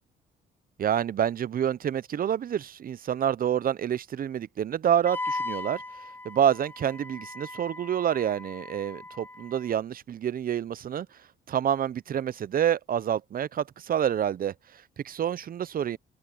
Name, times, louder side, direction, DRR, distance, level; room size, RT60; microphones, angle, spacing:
voice 1, 0.8-5.8 6.2-11.1 11.5-14.5 15.0-16.0, right 9 dB, 45° right, 0.6 m, -27 dB
Wind instrument woodwind instrument, 5.1-9.7, left 2 dB, 10° left, 1.9 m, -38 dB
cardioid pair, 90°, 20 cm